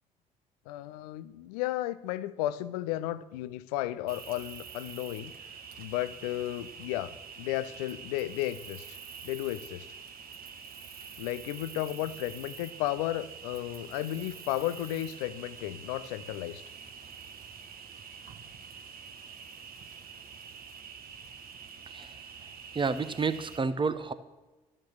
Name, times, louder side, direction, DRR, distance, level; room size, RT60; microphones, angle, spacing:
voice 1, 0.7-9.0 9.2-9.9 11.2-16.6, left 14 dB, 75° left, 17 dB, 0.6 m, -34 dB
Cricket, 4.1-23.6, right 6 dB, 50° right, 1.3 m, -46 dB
voice 2, 22.7-24.1, right 4 dB, 25° right, 13 dB, 1.0 m, -29 dB
13.0 x 8.8 x 6.4 m, 1.1 s
figure-of-eight pair, 45°, 20 cm